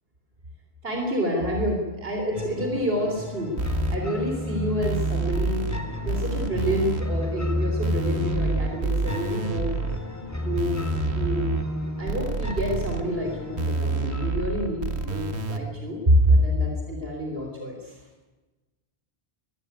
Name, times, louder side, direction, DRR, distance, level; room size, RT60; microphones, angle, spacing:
voice 1, 0.8-3.6 3.9-5.6 6.0-9.7 10.4-10.8 11.1-11.5 12.0-18.0, equal, 65° right, 2 dB, 3.9 m, -27 dB
sound 1, 2.3-15.3, left 1 dB, 15° left, 3.7 m, -32 dB
sound 2, 3.6-4.0 4.8-5.8 6.1-7.0 7.8-10.0 10.6-11.6 12.1-13.0 13.6-15.6, right 3 dB, 85° right, 2.0 m, -28 dB
23.5 x 15.5 x 9.8 m, 1.2 s
omnidirectional pair, 1.1 m